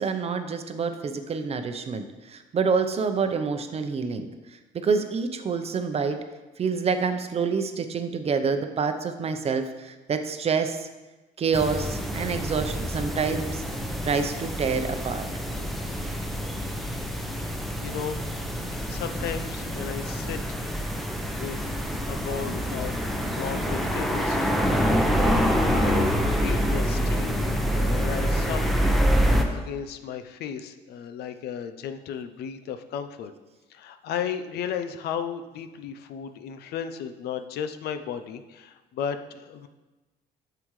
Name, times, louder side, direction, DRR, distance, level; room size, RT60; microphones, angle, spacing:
voice 1, 0.0-4.3 4.7-6.2 6.6-10.9 11.4-13.6 14.0-15.3, right 5 dB, 35° right, 8 dB, 0.7 m, -27 dB
sound 1, 11.5-29.4, equal, ahead, 0.9 m, -26 dB
voice 2, 17.8-18.2 18.8-20.4 21.4-21.6 22.1-33.3 33.7-39.7, left 8 dB, 70° left, 9 dB, 0.6 m, -35 dB
9.5 x 6.9 x 3.2 m, 1.2 s
cardioid pair, 110°, 17 cm